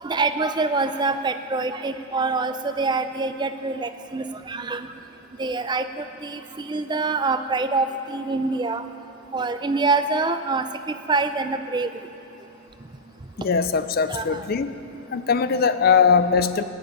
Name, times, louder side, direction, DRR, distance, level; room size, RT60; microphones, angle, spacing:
voice 1, 0.0-4.9 5.4-8.8 9.3-11.9 14.1-14.4, right 3 dB, 20° right, 9 dB, 0.4 m, -25 dB
voice 2, 13.4-14.7 15.1-16.6, left 6 dB, 45° left, 12 dB, 0.5 m, -20 dB
14.0 x 7.7 x 9.2 m, 2.9 s
head